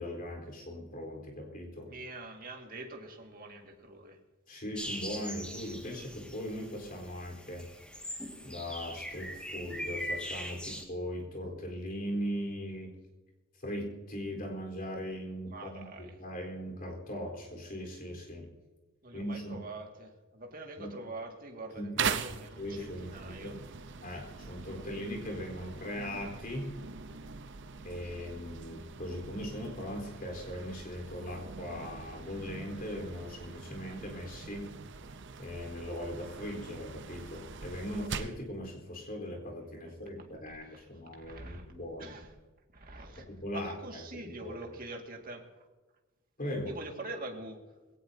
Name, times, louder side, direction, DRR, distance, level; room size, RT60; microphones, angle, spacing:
voice 1, 0.0-1.9 4.5-7.7 8.4-12.9 13.6-18.5 19.1-19.6 20.8-20.9 21.7-22.2 22.6-23.6 24.0-26.8 27.8-34.7 35.4-42.1 43.4-44.6 46.4-46.8, equal, 45° left, 1 dB, 4.1 m, -39 dB
voice 2, 1.9-4.2 15.5-16.2 19.0-23.6 40.2-40.9 41.2-41.7 42.0-42.3 42.7-43.2 43.5-45.5 46.6-47.6, right 2 dB, 45° right, 2 dB, 2.1 m, -44 dB
sound 1, 4.8-10.8, equal, 5° left, 2.0 m, -41 dB
sound 2, 22.0-38.4, right 6 dB, 60° right, 0.8 m, -42 dB
21.5 x 17.5 x 2.8 m, 1.2 s
head